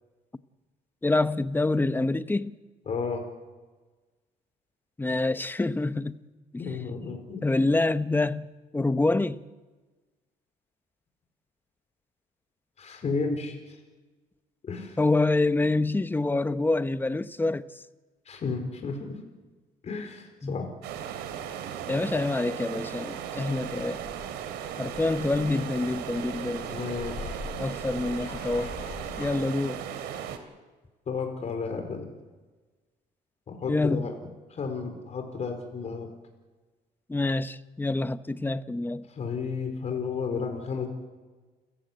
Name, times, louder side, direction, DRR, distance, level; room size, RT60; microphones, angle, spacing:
voice 1, 1.0-2.5 5.0-6.2 6.5-6.6 7.0-7.1 7.4-9.4 15.0-17.6 20.4-20.6 21.9-24.0 24.8-26.7 27.6-28.7 29.2-29.8 33.7-34.1 37.1-39.0, left 2 dB, 10° left, 0.9 m, -26 dB
voice 2, 2.9-3.2 6.6-7.4 12.8-13.8 14.6-15.0 18.3-19.2 19.8-20.7 25.4-25.6 26.7-27.4 31.1-32.1 33.5-36.1 39.1-40.9, left 5 dB, 40° left, 4.5 m, -33 dB
sound 1, 20.8-30.4, right 9 dB, 90° right, 3.1 m, -37 dB
sound 2, 23.1-29.4, left 4 dB, 65° left, 7.6 m, -44 dB
29.5 x 15.0 x 9.1 m
cardioid pair, 110°, 17 cm